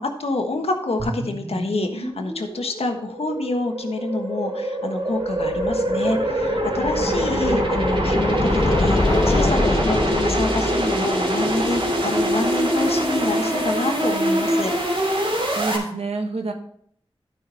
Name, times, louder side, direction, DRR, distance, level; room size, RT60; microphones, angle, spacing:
voice 1, 0.0-14.8, left 2 dB, 80° left, 4 dB, 1.4 m, -27 dB
sound 1, 1.0-15.8, right 1 dB, 65° right, 3.0 m, -24 dB
sound 2, 5.4-12.4, left 2 dB, 40° left, 0.8 m, -25 dB
voice 2, 15.3-16.5, right 3 dB, 85° right, 4 dB, 1.3 m, -28 dB
11.5 x 6.0 x 4.2 m, 0.65 s
wide cardioid pair, 50°, 10 cm